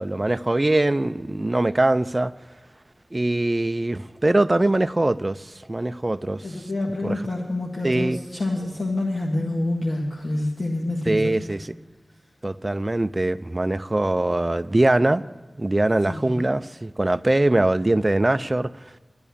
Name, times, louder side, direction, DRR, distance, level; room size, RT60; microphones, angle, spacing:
voice 1, 0.0-2.3 3.1-6.4 7.0-7.2 7.8-8.2 11.1-11.7 12.4-15.2 15.6-18.7, right 2 dB, 30° right, 0.5 m, -22 dB
voice 2, 6.4-11.4 16.1-16.5, left 2 dB, 70° left, 1.8 m, -27 dB
12.0 x 10.5 x 7.0 m
wide cardioid pair, 80°, 0 cm